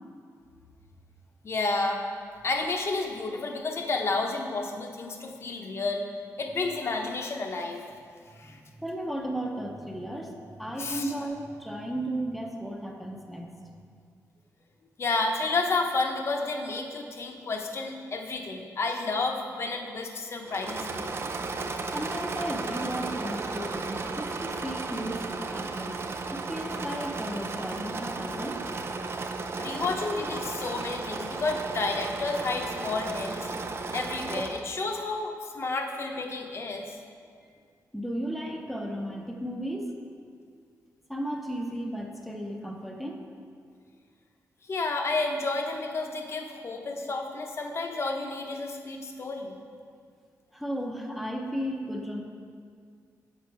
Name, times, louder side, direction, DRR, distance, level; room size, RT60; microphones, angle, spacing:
voice 1, 1.4-2.0 2.4-6.0 6.4-7.8 8.4-8.6 10.8-11.1 15.0-21.1 29.6-33.5 33.9-37.0 44.7-49.6, left 3 dB, 45° left, 3 dB, 0.9 m, -31 dB
voice 2, 8.5-13.6 21.9-26.0 26.3-28.7 37.9-39.9 41.1-43.2 50.5-52.2, right 1 dB, ahead, 0 dB, 0.8 m, -34 dB
Engine / Mechanisms, 20.4-34.7, right 3 dB, 40° right, 0.5 m, -34 dB
8.7 x 6.8 x 4.6 m, 2.2 s
wide cardioid pair, 135°, 6 cm